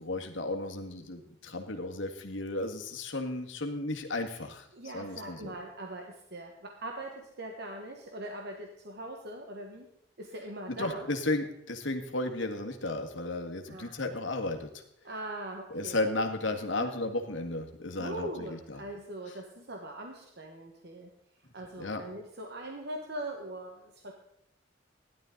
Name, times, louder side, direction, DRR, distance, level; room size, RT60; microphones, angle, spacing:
voice 1, 0.0-4.7 4.9-5.5 10.7-14.7 15.7-18.8 21.8-22.0, left 2 dB, 80° left, 4 dB, 1.8 m, -34 dB
voice 2, 4.7-7.1 7.4-9.8 10.2-11.1 13.7-14.0 15.0-16.0 18.0-21.1 21.5-24.1, right 1 dB, 60° right, 2 dB, 1.5 m, -41 dB
16.5 x 11.5 x 3.9 m, 0.80 s
head